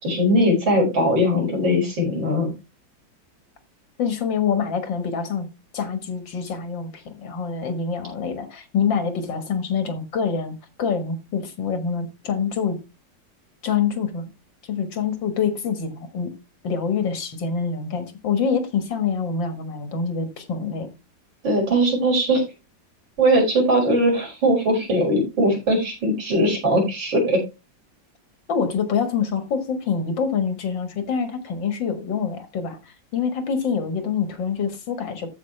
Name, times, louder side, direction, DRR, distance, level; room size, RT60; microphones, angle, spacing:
voice 1, 0.0-2.5 21.4-22.4 23.2-27.4, equal, 90° right, 5.7 m, -20 dB
voice 2, 4.0-5.5 5.7-12.8 13.6-14.3 14.6-16.3 16.6-20.9 28.5-32.8 33.1-35.3, left 6 dB, 75° left, 2.4 m, -25 dB
14.0 x 4.8 x 3.3 m
omnidirectional pair, 2.0 m